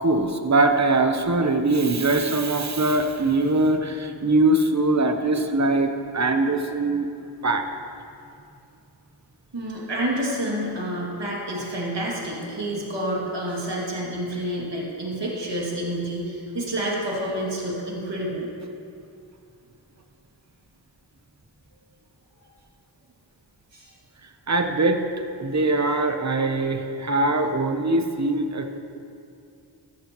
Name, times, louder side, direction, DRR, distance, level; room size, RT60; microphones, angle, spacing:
voice 1, 0.0-7.1 7.4-7.6 24.5-25.0 25.4-28.8, right 2 dB, 40° right, 5 dB, 0.9 m, -22 dB
voice 2, 9.5-18.5 23.7-23.9, right 1 dB, 75° right, -4 dB, 2.6 m, -29 dB
14.5 x 14.0 x 3.1 m, 2.5 s
wide cardioid pair, 50°, 43 cm